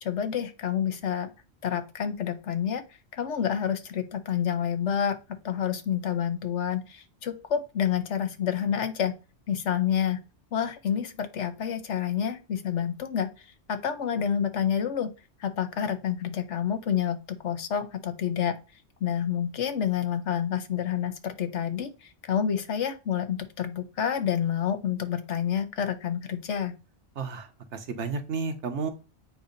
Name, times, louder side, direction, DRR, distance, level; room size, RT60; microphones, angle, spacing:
voice 1, 0.0-1.3 1.6-2.8 3.1-5.2 5.4-9.1 9.5-10.2 10.5-15.1 15.4-18.6 19.0-26.8, left 8 dB, 80° left, 9 dB, 1.2 m, -28 dB
voice 2, 27.2-28.9, right 5 dB, 75° right, 7 dB, 1.2 m, -32 dB
8.0 x 2.7 x 5.1 m, 0.31 s
omnidirectional pair, 1.2 m